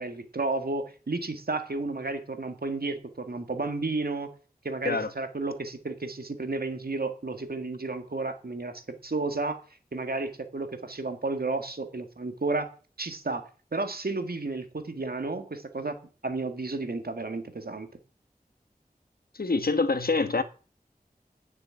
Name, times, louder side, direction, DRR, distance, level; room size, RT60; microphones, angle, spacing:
voice 1, 0.0-4.3 4.6-9.6 9.9-12.7 13.0-13.4 13.7-16.0 16.2-17.9, right 3 dB, 80° right, 1.9 m, -32 dB
voice 2, 19.3-20.4, left 3 dB, 75° left, 1.3 m, -25 dB
10.0 x 6.8 x 8.8 m
wide cardioid pair, 55°, 16 cm